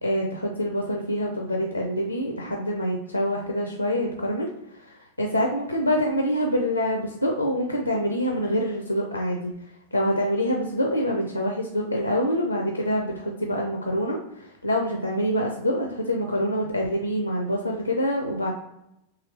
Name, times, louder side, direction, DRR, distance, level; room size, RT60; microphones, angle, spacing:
voice 1, 0.0-9.5 9.9-18.5, equal, 85° left, 1 dB, 0.5 m, -26 dB
3.8 x 2.9 x 3.0 m, 0.82 s
figure-of-eight pair, 90°, 0 cm